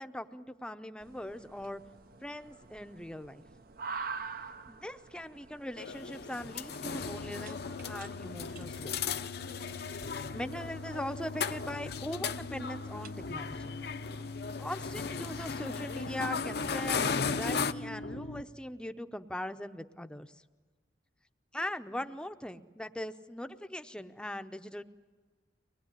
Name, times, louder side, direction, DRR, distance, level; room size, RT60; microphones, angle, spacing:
voice 1, 0.0-1.8 2.2-3.4 4.7-9.0 10.3-13.7 14.6-20.3 21.5-24.8, left 1 dB, 5° left, 8 dB, 0.7 m, -40 dB
sound 1, 1.0-14.3, right 5 dB, 55° right, 0.7 m, -48 dB
sound 2, 5.8-17.7, left 5 dB, 60° left, 0.7 m, -37 dB
sound 3, 7.0-18.4, left 3 dB, 80° left, 1.0 m, -43 dB
24.5 x 20.0 x 9.9 m, 1.4 s
head